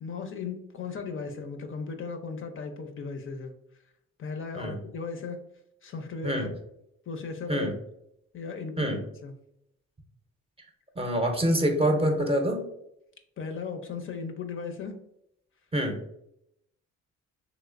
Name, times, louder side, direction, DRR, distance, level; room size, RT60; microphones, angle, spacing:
voice 1, 0.0-3.5 4.2-5.4 5.8-6.5 7.1-7.7 8.3-9.3 13.4-15.0, left 5 dB, 45° left, 5 dB, 0.5 m, -36 dB
voice 2, 11.0-12.6 15.7-16.0, right 1 dB, 20° right, 3 dB, 0.6 m, -25 dB
3.0 x 3.0 x 2.4 m, 0.78 s
cardioid pair, 90°, 30 cm